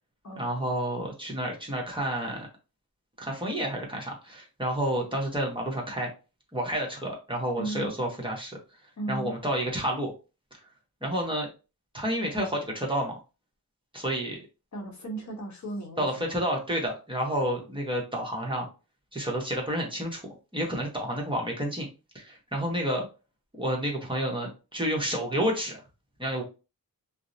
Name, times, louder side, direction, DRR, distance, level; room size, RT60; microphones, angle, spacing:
voice 1, 0.4-2.5 3.2-6.1 6.5-8.6 9.1-10.1 11.0-11.5 11.9-13.2 13.9-14.4 16.0-18.7 19.1-21.9 22.1-23.1 23.6-25.8 26.2-26.4, equal, 15° right, -2 dB, 0.9 m, -30 dB
voice 2, 7.6-7.9 9.0-9.4 14.7-16.4, right 2 dB, 50° left, 2 dB, 0.8 m, -36 dB
2.7 x 2.0 x 2.6 m, 0.31 s
cardioid pair, 70°, 37 cm